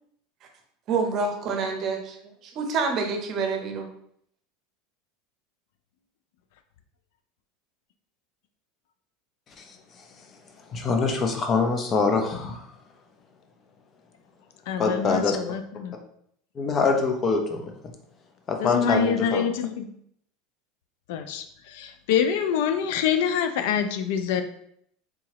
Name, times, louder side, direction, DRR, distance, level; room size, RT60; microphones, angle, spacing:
voice 1, 0.9-2.2 2.4-3.9, right 4 dB, 45° right, 4 dB, 0.7 m, -27 dB
voice 2, 10.7-12.6 14.8-15.4 16.6-17.7 18.5-19.4, left 4 dB, 35° left, 4 dB, 0.7 m, -24 dB
voice 3, 14.7-15.9 18.6-19.9 21.1-24.4, left 7 dB, 75° left, 8 dB, 0.3 m, -26 dB
3.7 x 2.8 x 3.0 m, 0.69 s
supercardioid pair, 110°, 0 cm